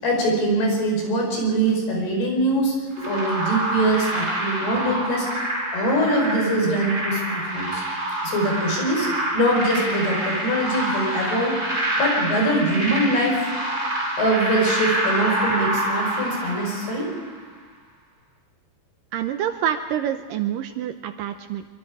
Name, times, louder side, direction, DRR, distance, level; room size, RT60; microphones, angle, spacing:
voice 1, 0.0-7.8 8.2-9.1 9.3-11.6 12.0-13.4 14.2-17.1, right 1 dB, 80° left, 1 dB, 6.6 m, -23 dB
sound 1, 3.0-17.3, right 1 dB, 20° right, 4.7 m, -27 dB
voice 2, 19.1-21.7, right 10 dB, 75° right, 8 dB, 2.1 m, -27 dB
25.0 x 24.0 x 4.9 m, 1.4 s
omnidirectional pair, 4.5 m